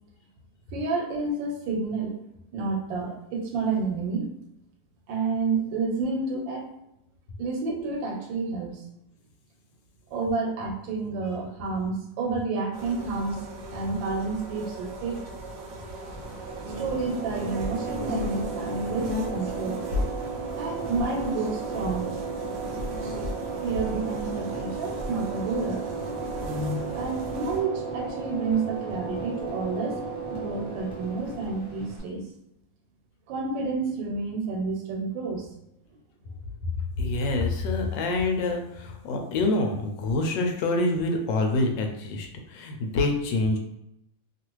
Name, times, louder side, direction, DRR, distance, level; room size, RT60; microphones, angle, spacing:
voice 1, 0.7-2.2 2.5-4.3 5.1-6.7 7.4-8.8 10.1-13.4 13.7-15.4 16.8-19.8 20.6-22.2 23.6-25.9 26.9-30.0 30.3-32.2 33.3-35.5, right 4 dB, 80° right, 2 dB, 1.4 m, -30 dB
sound 1, 12.7-27.6, left 1 dB, 65° right, 0.9 m, -36 dB
sound 2, 16.0-32.0, right 4 dB, 20° left, 1.1 m, -35 dB
voice 2, 37.0-43.6, left 2 dB, 80° left, 3 dB, 1.2 m, -26 dB
2.9 x 2.4 x 3.0 m, 0.84 s
omnidirectional pair, 2.0 m